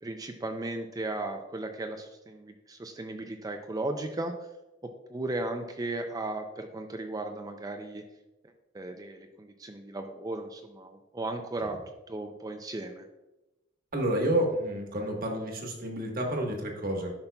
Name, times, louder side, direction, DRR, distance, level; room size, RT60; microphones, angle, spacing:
voice 1, 0.0-4.3 4.8-8.0 8.7-11.8 12.1-13.1, right 2 dB, 20° right, 5 dB, 0.4 m, -36 dB
voice 2, 13.9-17.1, right 1 dB, 50° right, 1 dB, 1.3 m, -29 dB
10.5 x 5.7 x 2.3 m, 1.0 s
head